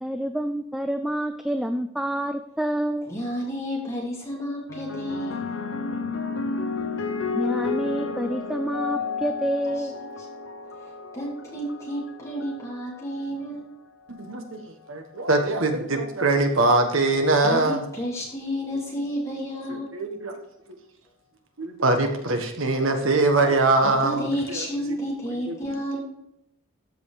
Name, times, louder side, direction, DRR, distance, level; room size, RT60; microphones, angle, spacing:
voice 1, 0.0-3.1 7.3-9.9, equal, ahead, 7 dB, 0.3 m, -28 dB
voice 2, 3.1-5.5 11.1-13.7 17.4-19.9 23.8-26.0, equal, 15° left, -4 dB, 3.1 m, -31 dB
sound 1, 4.7-13.3 14.2-14.6, left 4 dB, 60° left, 0.8 m, -32 dB
voice 3, 14.9-17.8 19.6-20.3 21.6-24.7 25.2-25.5, right 2 dB, 70° right, 4 dB, 1.4 m, -22 dB
13.5 x 5.3 x 4.9 m, 0.80 s
head